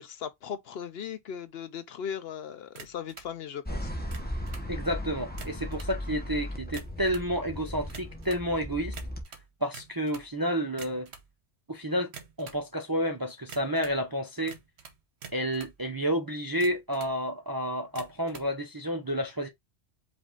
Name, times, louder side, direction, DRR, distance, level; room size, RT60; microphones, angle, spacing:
voice 1, 0.0-3.9, left 8 dB, 65° left, 0.8 m, -38 dB
sound 1, 2.7-3.3 4.0-4.7 5.3-6.0 6.6-7.3 7.9-8.5 8.9-10.3 10.7-11.3 12.0-12.6 13.5-14.0 14.5-15.8 16.4-17.2 17.9-18.5, right 6 dB, 65° right, 1.2 m, -47 dB
sound 2, 3.7-9.2, left 1 dB, 10° left, 0.9 m, -37 dB
voice 2, 4.7-8.9 9.6-11.1 11.7-12.1 12.4-14.6 15.3-19.5, equal, 25° right, 0.5 m, -30 dB
5.1 x 2.6 x 3.7 m
omnidirectional pair, 1.2 m